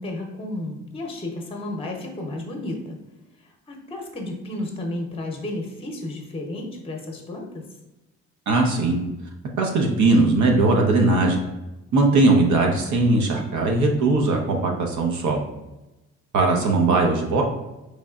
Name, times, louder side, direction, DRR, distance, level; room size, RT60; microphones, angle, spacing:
voice 1, 0.0-3.0 3.4-7.7, left 1 dB, 20° left, 1 dB, 0.8 m, -32 dB
voice 2, 8.5-9.0 9.6-11.4 11.9-15.4 16.3-17.4, right 2 dB, 70° right, 1 dB, 0.8 m, -19 dB
4.1 x 3.2 x 2.4 m, 1.0 s
cardioid pair, 90°, 30 cm